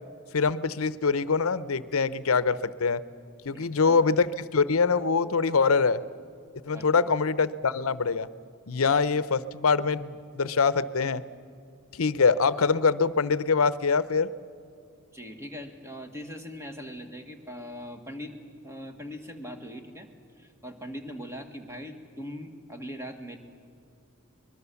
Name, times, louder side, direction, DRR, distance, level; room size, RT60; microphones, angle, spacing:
voice 1, 0.3-3.0 3.4-6.0 6.6-8.3 8.7-11.2 11.9-14.3, left 5 dB, 70° left, 16 dB, 0.7 m, -24 dB
voice 2, 3.5-4.0 6.7-6.9 15.1-18.4 18.6-20.1 20.4-23.4, equal, 15° right, 6 dB, 1.8 m, -41 dB
24.0 x 21.0 x 7.0 m, 2.3 s
head